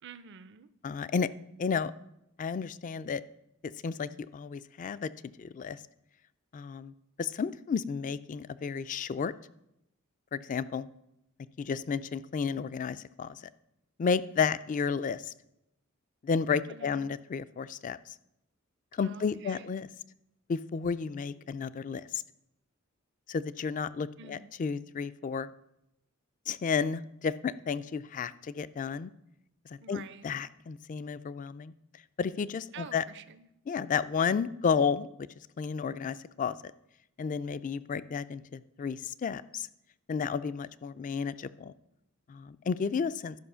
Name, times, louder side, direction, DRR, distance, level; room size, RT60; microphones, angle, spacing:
voice 1, 0.0-0.7 16.7-17.1 19.0-19.8 24.2-24.5 29.8-30.2 32.7-33.5, right 6 dB, 55° right, 14 dB, 0.5 m, -48 dB
voice 2, 0.8-1.3 1.6-1.9 2.4-3.2 3.6-5.1 5.4-5.8 6.5-6.9 7.2-9.3 10.3-10.9 11.6-13.4 14.0-15.3 16.2-18.1 18.9-19.9 20.5-22.2 23.3-25.5 26.5-29.1 29.7-31.7 32.2-33.0 33.7-35.1 35.6-36.6 37.2-39.7 40.1-41.7 42.3-43.4, left 6 dB, 35° left, 16 dB, 0.3 m, -32 dB
12.0 x 5.5 x 5.6 m, 0.82 s
head